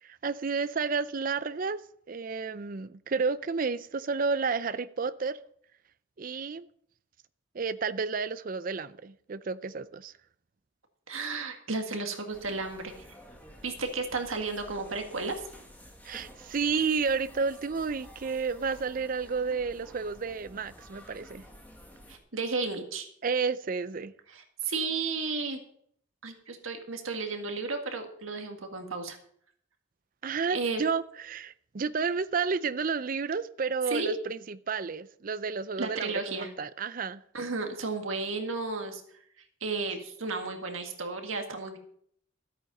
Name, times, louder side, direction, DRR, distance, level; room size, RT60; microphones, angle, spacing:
voice 1, 0.0-1.8 2.1-5.4 6.2-6.7 7.5-10.1 16.0-21.4 23.2-24.1 30.2-37.2, right 5 dB, 45° right, 15 dB, 0.5 m, -31 dB
voice 2, 11.1-13.1 13.6-15.4 22.1-23.1 24.3-25.6 26.2-29.2 30.5-30.8 33.9-34.1 35.8-36.5 37.3-39.0 39.6-41.8, right 3 dB, 90° right, 4 dB, 1.9 m, -33 dB
sound 1, 12.3-22.2, equal, 10° left, 1.7 m, -51 dB
13.0 x 8.6 x 5.4 m, 0.66 s
head